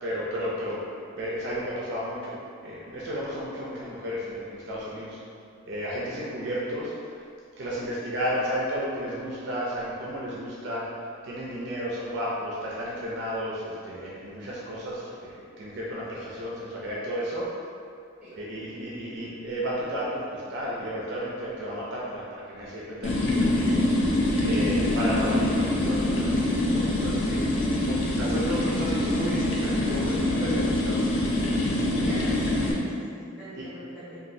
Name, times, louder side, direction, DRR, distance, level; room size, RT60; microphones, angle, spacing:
voice 1, 0.0-0.8 1.2-2.4 2.6-5.2 5.7-7.2 7.6-10.9 11.2-17.5 18.3-23.8 24.4-27.4 27.7-31.3 33.5-33.7, equal, 55° right, -6 dB, 0.4 m, -33 dB
sound 1, 23.0-32.7, left 1 dB, 65° left, 0.4 m, -25 dB
voice 2, 32.0-34.2, equal, 5° right, -13 dB, 1.2 m, -41 dB
3.0 x 2.3 x 2.6 m, 2.4 s
head